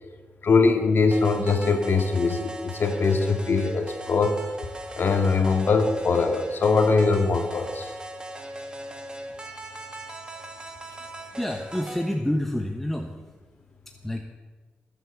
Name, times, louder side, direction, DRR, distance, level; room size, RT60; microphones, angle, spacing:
voice 1, 0.4-4.4 5.0-7.9, left 4 dB, 55° left, 5 dB, 2.2 m, -22 dB
sound 1, 1.1-12.1, right 1 dB, 20° right, 2.0 m, -39 dB
voice 2, 11.4-13.3 14.0-14.2, left 1 dB, 5° left, 3 dB, 1.1 m, -28 dB
21.5 x 8.1 x 7.1 m, 1.3 s
cardioid pair, 95°, 4 cm